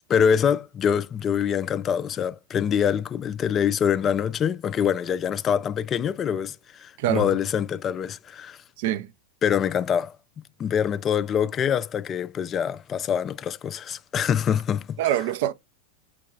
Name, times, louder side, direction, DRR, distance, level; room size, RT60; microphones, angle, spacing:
voice 1, 0.1-8.6 9.4-10.1 10.6-14.9, left 8 dB, 30° left, 0.3 m, -25 dB
voice 2, 7.0-7.4 8.8-9.1 15.0-15.5, right 12 dB, 65° right, 0.4 m, -25 dB
4.6 x 2.2 x 4.7 m
hypercardioid pair, 105°, 0 cm